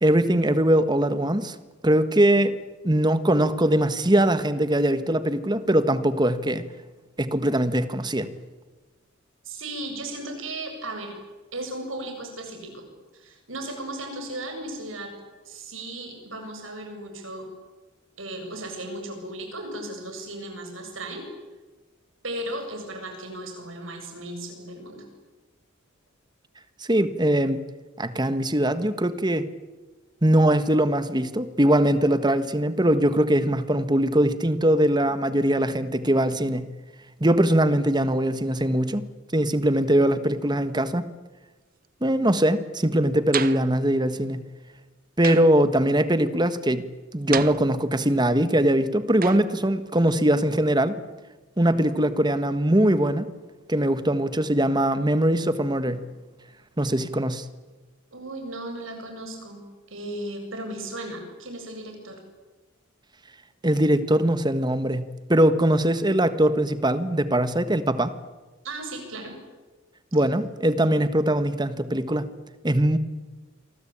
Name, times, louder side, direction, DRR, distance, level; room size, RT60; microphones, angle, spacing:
voice 1, 0.0-1.5 1.8-2.6 2.8-6.7 7.2-8.3 26.8-27.6 28.0-29.5 30.2-36.7 37.2-41.1 42.0-44.4 45.2-51.0 51.6-53.3 53.7-56.1 56.8-57.5 63.6-68.1 70.1-72.3 72.6-73.0, right 1 dB, 20° right, 12 dB, 1.5 m, -21 dB
voice 2, 9.4-11.1 11.5-12.9 13.1-15.1 15.4-17.5 18.2-21.3 22.2-25.0 58.1-62.2 68.6-69.4, right 1 dB, 80° right, 4 dB, 7.8 m, -36 dB
sound 1, 43.3-43.8 45.2-45.7 47.3-48.1 49.2-49.6, right 8 dB, 45° right, 1.0 m, -32 dB
28.5 x 24.0 x 8.8 m, 1.2 s
head